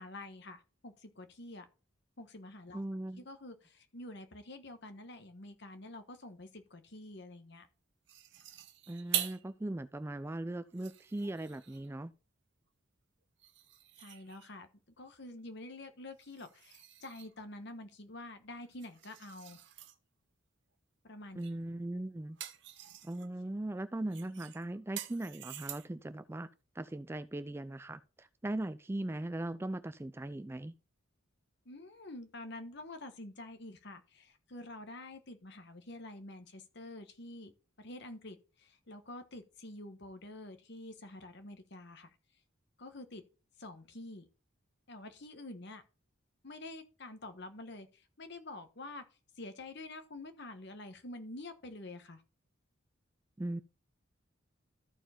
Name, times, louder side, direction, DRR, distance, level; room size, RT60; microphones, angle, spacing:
voice 1, 0.0-1.7 2.2-2.8 3.1-7.7 14.0-14.7 15.0-19.6 21.0-21.4 31.6-37.5 37.8-42.2 42.8-43.2 43.6-44.3 44.9-45.8 46.4-49.0 49.4-52.2, left 2 dB, 55° left, 1.3 m, -48 dB
voice 2, 2.7-3.2 8.9-12.1 21.4-22.4 23.0-26.5 26.8-30.7 53.4-53.6, right 1 dB, 10° right, 0.3 m, -39 dB
sound 1, 8.1-9.5 10.0-10.1 10.6-11.9 13.4-14.6 16.2-17.4 18.6-20.0 21.4-21.7 22.0-23.3 24.1-26.1, right 12 dB, 60° right, 0.9 m, -44 dB
13.5 x 4.6 x 4.4 m
head